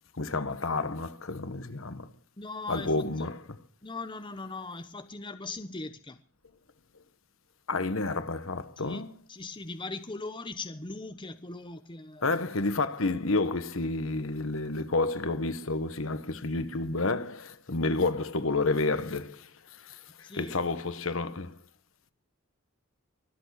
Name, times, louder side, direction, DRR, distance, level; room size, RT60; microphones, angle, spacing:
voice 1, 0.2-2.1 2.7-3.4 7.7-9.1 12.2-21.6, left 3 dB, 75° left, 1.3 m, -30 dB
voice 2, 2.4-3.3 3.8-6.2 8.8-12.2 20.2-20.5, left 3 dB, 25° left, 1.0 m, -40 dB
24.5 x 8.4 x 6.5 m
head